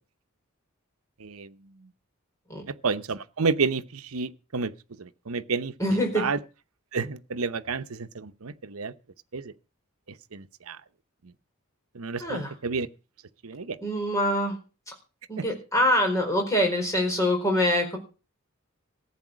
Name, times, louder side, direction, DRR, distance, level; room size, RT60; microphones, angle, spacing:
voice 1, 2.8-4.7 5.0-6.4 6.9-8.9 9.3-9.5 10.3-10.8 11.9-12.9 13.4-13.8 15.4-15.5, right 4 dB, 85° right, 0.9 m, -30 dB
voice 2, 5.8-6.2 12.2-12.5 13.8-14.5 15.3-18.0, left 1 dB, 15° left, 4.6 m, -24 dB
15.0 x 8.8 x 6.3 m
head